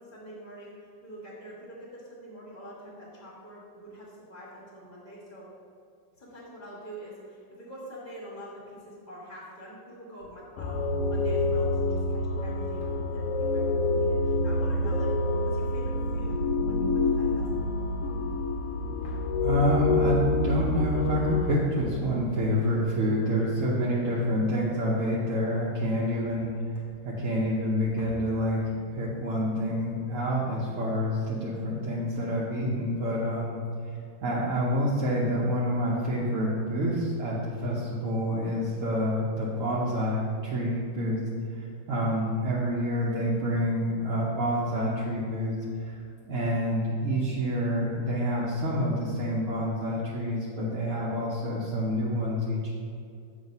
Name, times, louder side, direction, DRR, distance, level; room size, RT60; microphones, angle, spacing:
voice 1, 0.0-5.4 6.2-17.8, equal, 25° left, -6 dB, 1.6 m, -45 dB
sound 1, 10.2-10.7 11.4-12.0 12.7-13.5 16.1-16.9 17.2-17.7 18.5-23.1 23.5-24.7 25.0-25.5 25.7-27.3 27.6-28.8, left 2 dB, 40° left, 0.7 m, -49 dB
sound 2, 10.6-21.5, left 2 dB, 80° left, 0.7 m, -27 dB
voice 2, 19.4-26.5 27.0-33.6 34.2-41.2 41.5-45.5 45.8-46.0 46.2-52.7, equal, 55° right, -6 dB, 0.9 m, -28 dB
7.4 x 3.1 x 5.3 m, 2.4 s
omnidirectional pair, 2.1 m